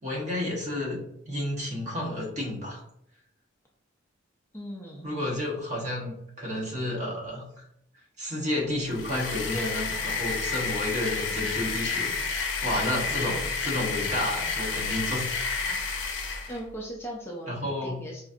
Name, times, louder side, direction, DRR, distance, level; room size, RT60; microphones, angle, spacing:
voice 1, 0.0-2.8 5.0-7.4 8.2-15.3 15.6-16.0 17.5-18.0, left 1 dB, 35° right, -3 dB, 1.0 m, -31 dB
voice 2, 4.5-5.1 16.5-18.2, equal, 10° left, -3 dB, 0.5 m, -38 dB
sound 1, 8.8-16.6, left 4 dB, 70° left, 0.6 m, -30 dB
4.9 x 2.6 x 2.4 m, 0.75 s
head